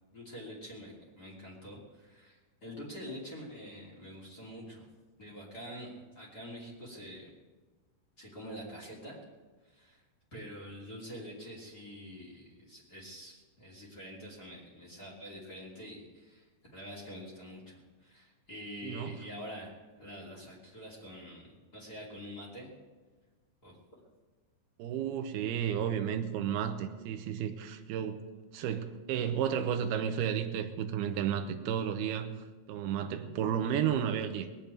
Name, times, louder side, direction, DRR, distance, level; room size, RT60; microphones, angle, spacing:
voice 1, 0.1-4.9 5.2-7.3 8.2-9.2 9.6-10.0 10.3-16.5 16.7-22.7 23.6-24.0, equal, 25° left, -3 dB, 2.5 m, -46 dB
voice 2, 24.8-28.2 28.5-32.3 32.7-34.5, right 8 dB, 75° right, 8 dB, 2.4 m, -32 dB
21.0 x 7.1 x 9.1 m, 1.3 s
omnidirectional pair, 5.4 m